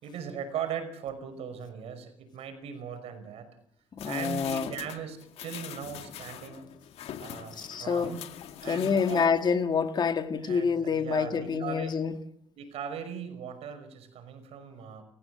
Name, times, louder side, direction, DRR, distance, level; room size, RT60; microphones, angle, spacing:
voice 1, 0.0-3.5 4.0-6.7 7.2-8.2 8.6-9.3 10.4-12.0 12.6-15.0, right 7 dB, 70° right, 9 dB, 5.5 m, -39 dB
voice 2, 3.9-4.7 7.6-8.1 8.7-12.1, left 6 dB, 45° left, 8 dB, 2.0 m, -27 dB
sound 1, 4.0-9.6 10.0-10.1, left 10 dB, 70° left, 2.0 m, -43 dB
29.5 x 15.5 x 7.8 m, 0.73 s
cardioid pair, 95°, 11 cm